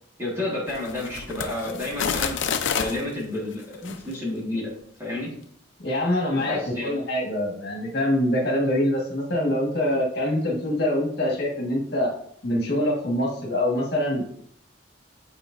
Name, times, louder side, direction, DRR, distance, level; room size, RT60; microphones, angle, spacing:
voice 1, 0.2-2.4 2.7-4.7 5.0-5.3 6.4-6.9, left 2 dB, 15° right, -6 dB, 1.6 m, -30 dB
sound 1, 0.7-3.0 3.7-4.0, left 6 dB, 80° left, 0.5 m, -28 dB
voice 2, 5.8-12.1 12.4-14.2, left 1 dB, 55° left, -2 dB, 1.6 m, -24 dB
8.9 x 4.1 x 2.6 m, 0.64 s
head